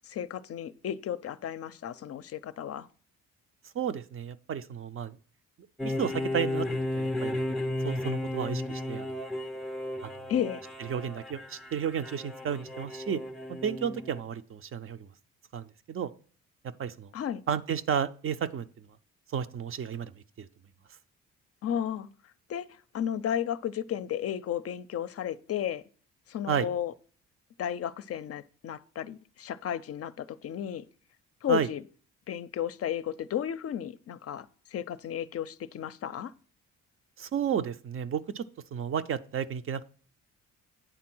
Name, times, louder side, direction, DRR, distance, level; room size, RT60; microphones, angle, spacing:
voice 1, 0.0-2.9 10.3-10.6 17.1-17.4 21.6-22.1 22.5-22.7 22.9-25.8 26.3-26.9 27.6-30.8 31.4-31.8 32.3-36.3, left 10 dB, 50° left, 0.5 m, -33 dB
voice 2, 3.7-5.2 5.8-6.7 6.9-7.5 7.8-9.2 10.0-10.1 10.8-13.2 13.5-15.1 15.5-16.1 16.8-17.1 17.5-18.9 19.3-20.1 20.4-20.5 26.5-26.7 31.5-31.7 37.2-38.5 38.7-39.8, right 8 dB, 45° right, 0.5 m, -32 dB
sound 1, 5.8-14.2, left 1 dB, ahead, 0.5 m, -34 dB
9.1 x 3.7 x 6.0 m
cardioid pair, 90°, 30 cm